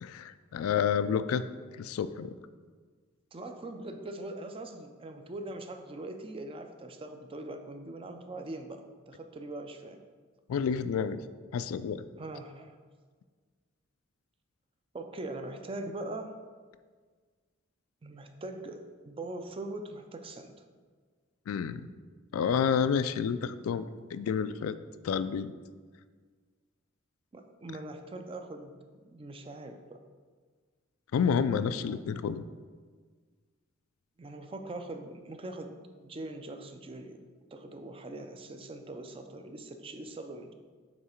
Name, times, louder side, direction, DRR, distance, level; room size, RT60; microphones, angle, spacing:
voice 1, 0.0-1.4 1.8-2.3 10.5-11.2 11.5-12.0 21.5-21.9 22.3-23.9 24.1-24.8 25.0-25.5 31.1-32.4, left 7 dB, 85° left, 14 dB, 0.3 m, -29 dB
voice 2, 3.3-10.0 12.2-12.8 14.9-16.4 18.0-20.5 27.3-30.0 31.9-32.0 34.2-35.8 36.0-37.2 37.5-40.5, right 2 dB, 25° right, 6 dB, 0.4 m, -42 dB
7.4 x 3.2 x 4.4 m, 1.5 s
head